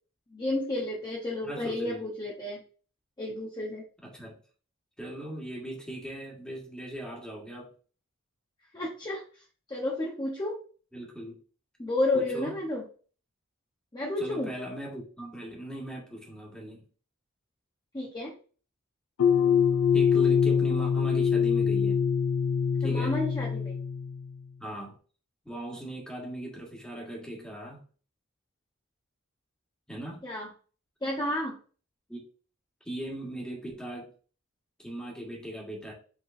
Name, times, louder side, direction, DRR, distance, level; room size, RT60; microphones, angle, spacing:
voice 1, 0.3-2.6 3.2-3.8 8.7-9.2 9.7-10.6 11.8-12.8 13.9-14.5 17.9-18.3 22.8-23.8 30.2-30.5 31.0-31.5, left 2 dB, 20° left, -3 dB, 0.8 m, -31 dB
voice 2, 1.4-2.0 4.0-4.4 5.0-7.7 10.9-11.4 12.1-12.6 14.2-16.8 19.9-22.0 22.8-23.1 24.6-25.0 25.4-27.8 29.9-30.2 32.1-32.2 32.8-34.1 34.8-35.9, right 1 dB, 5° left, -3 dB, 1.6 m, -39 dB
sound 1, 19.2-24.4, left 7 dB, 75° left, 0.4 m, -24 dB
5.6 x 3.6 x 2.6 m, 0.40 s
head